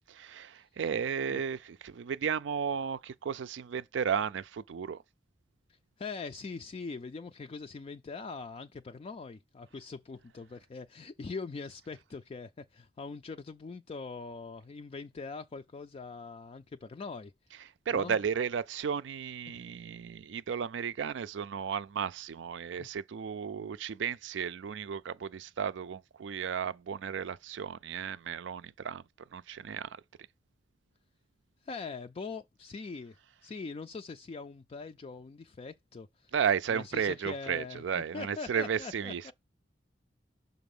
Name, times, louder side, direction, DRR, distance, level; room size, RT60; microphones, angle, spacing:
voice 1, 0.1-5.0 17.9-30.0 36.3-39.3, right 7 dB, 80° right, 0.4 m, -34 dB
voice 2, 6.0-17.3 17.9-18.2 19.5-19.6 22.8-22.9 31.6-33.2 33.4-36.3 36.7-39.3, left 4 dB, 35° left, 0.3 m, -42 dB
5.9 x 4.0 x 5.3 m
head